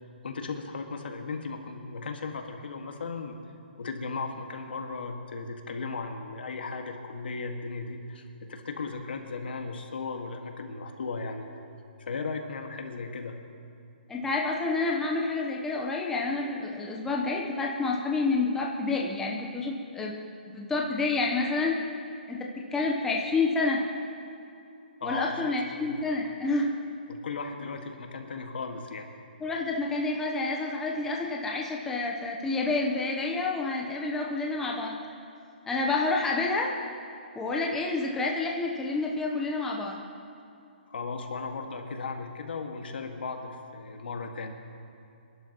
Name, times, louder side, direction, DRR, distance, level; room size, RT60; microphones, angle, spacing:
voice 1, 0.2-3.4 3.8-11.5 12.0-13.3 25.0-25.4 25.7-25.9 27.1-29.1 40.9-44.5, left 4 dB, 70° left, 4 dB, 1.8 m, -36 dB
voice 2, 14.1-20.2 20.5-21.8 22.3-23.8 25.0-26.7 29.4-35.0 35.7-36.7 37.3-40.0, left 3 dB, 5° left, -1 dB, 0.8 m, -29 dB
26.5 x 11.5 x 3.0 m, 2.6 s
hypercardioid pair, 160°, 6 cm